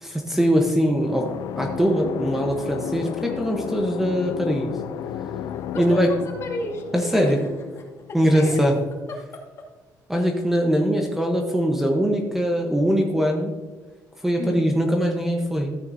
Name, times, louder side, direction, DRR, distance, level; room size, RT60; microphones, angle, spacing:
voice 1, 0.0-4.7 5.8-6.1 6.9-7.4 8.1-8.7 10.1-13.5 14.2-15.7, equal, 5° right, 1 dB, 0.9 m, -22 dB
sound 1, 0.9-8.6, left 9 dB, 65° left, 0.4 m, -33 dB
voice 2, 5.5-6.8 7.1-7.5 8.1-8.6 9.1-9.4 14.4-14.7, left 3 dB, 40° left, -1 dB, 2.3 m, -32 dB
14.0 x 8.9 x 2.7 m, 1.4 s
cardioid pair, 150°, 7 cm